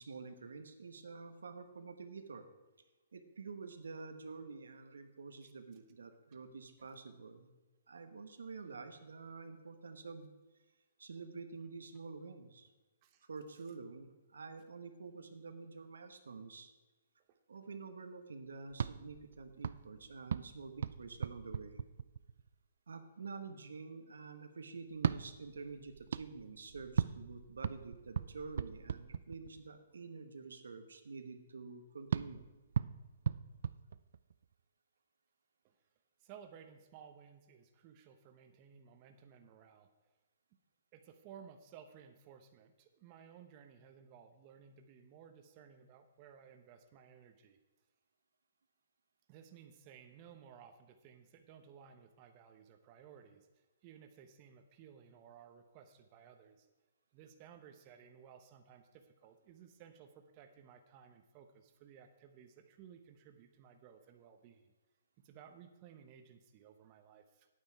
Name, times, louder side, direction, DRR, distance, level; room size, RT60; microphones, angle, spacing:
voice 1, 0.0-2.5 3.1-7.5 7.9-10.3 11.0-12.7 13.3-16.7 17.5-21.8 22.9-32.4, right 4 dB, 90° right, 7 dB, 1.1 m, -48 dB
sound 1, 18.7-22.5 24.9-29.8 32.1-34.5, right 7 dB, 70° right, 0.4 m, -39 dB
voice 2, 36.2-39.9 40.9-47.6 49.3-56.7 57.1-64.7 65.2-67.5, right 8 dB, 35° right, 6 dB, 0.9 m, -58 dB
9.7 x 8.8 x 4.6 m, 1.2 s
hypercardioid pair, 145°, 0 cm